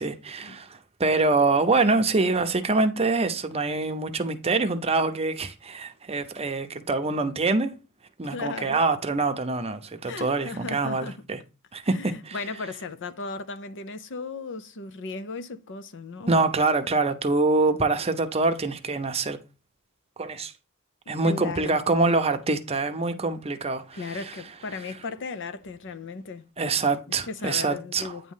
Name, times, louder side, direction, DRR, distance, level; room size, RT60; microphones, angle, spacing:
voice 1, 0.0-7.7 8.2-11.4 11.7-12.4 16.3-19.4 20.2-20.5 21.1-24.0 26.6-28.3, right 3 dB, 30° right, 0.7 m, -25 dB
voice 2, 8.2-8.8 10.0-11.2 11.9-16.4 21.1-21.8 23.9-26.5 27.1-28.3, left 4 dB, 55° left, 0.7 m, -36 dB
9.3 x 3.1 x 5.5 m
head